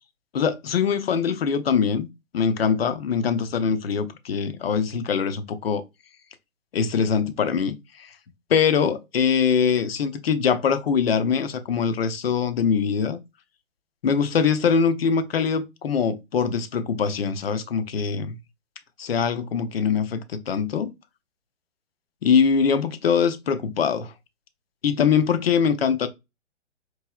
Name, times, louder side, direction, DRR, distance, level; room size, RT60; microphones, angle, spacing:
voice 1, 0.3-2.1 2.3-5.8 6.7-8.1 8.5-13.2 14.0-18.4 19.0-20.9 22.2-24.1 24.8-26.1, left 6 dB, 55° left, 0.6 m, -23 dB
4.6 x 2.7 x 2.3 m
figure-of-eight pair, 120°, 37 cm